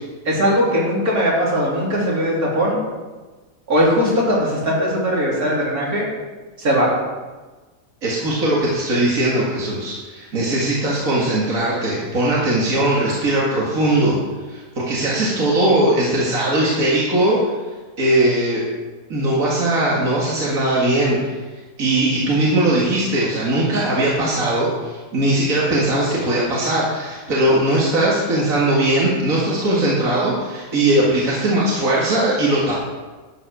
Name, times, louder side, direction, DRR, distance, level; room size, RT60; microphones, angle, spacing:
voice 1, 0.2-2.8 3.7-6.1 6.6-6.9, equal, 90° right, -5 dB, 3.9 m, -19 dB
voice 2, 8.0-14.2 14.5-17.5 18.0-18.6 19.1-21.3 21.8-32.8, right 1 dB, 70° right, -5 dB, 2.4 m, -19 dB
12.0 x 8.0 x 6.3 m, 1.3 s
omnidirectional pair, 1.5 m